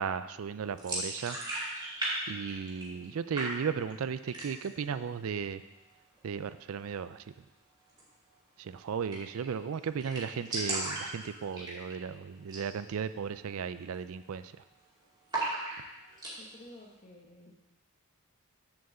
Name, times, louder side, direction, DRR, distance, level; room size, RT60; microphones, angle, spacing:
voice 1, 0.0-1.4 2.3-5.6 6.2-7.2 8.6-14.5, right 6 dB, 70° right, 13 dB, 0.4 m, -35 dB
sound 1, 0.8-2.1 2.4-3.1 3.3-3.9 4.2-4.8 5.1-5.2 5.5-6.2 7.9-8.0 8.3-8.4 8.7-8.8 9.1-9.5 9.7-9.8 10.0-12.1 12.4-12.7 13.0-13.1 13.7-13.9 14.2-14.8 15.3-16.3, right 2 dB, 20° right, 2.4 m, -36 dB
voice 2, 16.4-17.5, left 1 dB, 35° left, 1 dB, 1.3 m, -52 dB
7.5 x 5.4 x 7.0 m, 1.0 s
head